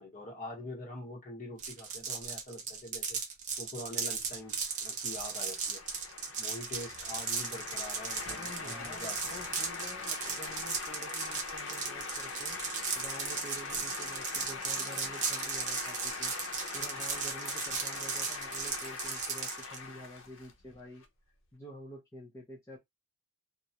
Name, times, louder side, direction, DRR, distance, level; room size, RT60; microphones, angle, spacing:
voice 1, 0.0-3.2 3.6-5.8 6.4-9.4, left 1 dB, 40° left, 1.0 m, -44 dB
sound 1, 1.6-19.8, right 5 dB, 35° right, 0.6 m, -36 dB
sound 2, 4.4-21.0, left 4 dB, 60° left, 0.6 m, -42 dB
voice 2, 8.2-12.6 13.0-16.3 16.7-21.0 21.5-22.8, equal, 15° left, 0.5 m, -49 dB
2.4 x 2.0 x 2.8 m
head